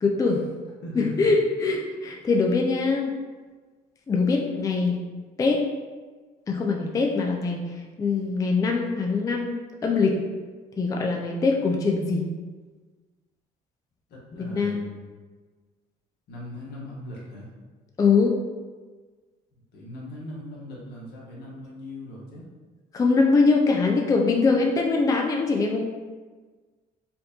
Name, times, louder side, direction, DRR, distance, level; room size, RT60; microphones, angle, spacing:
voice 1, 0.0-0.4 1.0-3.1 4.1-5.0 5.4-5.6 6.5-7.6 8.0-9.5 9.8-10.2 10.8-12.2 14.4-14.8 18.0-18.4 22.9-25.8, left 4 dB, 20° left, 1 dB, 0.3 m, -22 dB
voice 2, 0.8-1.3 14.1-15.0 16.3-17.5 19.7-22.4, left 1 dB, 80° left, -4 dB, 1.2 m, -39 dB
4.3 x 2.5 x 2.8 m, 1.4 s
cardioid pair, 110°, 17 cm